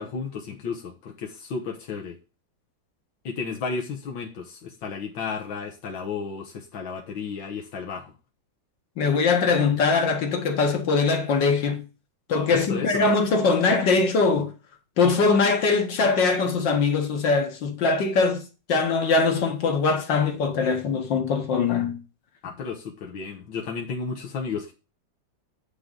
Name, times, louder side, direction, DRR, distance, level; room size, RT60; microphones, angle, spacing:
voice 1, 0.0-2.2 3.3-8.1 12.5-13.1 22.4-24.7, left 5 dB, 90° left, 2.0 m, -33 dB
voice 2, 9.0-11.8 12.3-14.5 15.0-22.0, left 4 dB, 75° left, 2.4 m, -22 dB
9.4 x 3.9 x 6.7 m
omnidirectional pair, 2.0 m